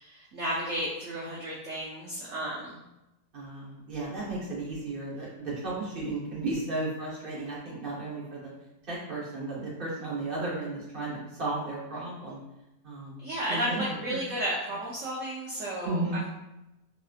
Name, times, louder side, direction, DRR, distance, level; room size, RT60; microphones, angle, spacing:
voice 1, 0.0-2.8 13.2-16.3, right 1 dB, 85° right, -5 dB, 0.6 m, -33 dB
voice 2, 3.3-8.5 8.9-12.4 12.8-13.2 13.5-14.2 15.8-16.2, right 2 dB, 40° right, -7 dB, 0.8 m, -34 dB
3.1 x 2.7 x 2.3 m, 0.93 s
omnidirectional pair, 2.0 m